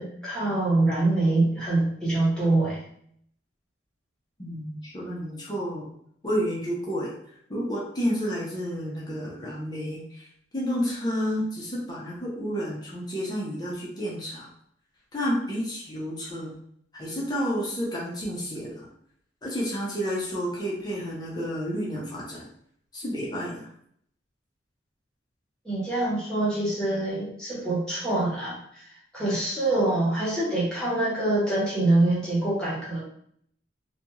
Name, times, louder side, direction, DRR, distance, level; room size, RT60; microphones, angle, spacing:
voice 1, 0.0-2.8 25.6-28.8 29.1-33.0, right 2 dB, 5° left, -9 dB, 1.0 m, -25 dB
voice 2, 4.4-5.9 6.2-7.1 7.5-10.3 10.5-14.5 15.1-16.6 16.9-18.9 19.4-22.5 22.9-23.7, equal, 20° left, -5 dB, 0.6 m, -30 dB
2.4 x 2.2 x 2.9 m, 0.67 s
head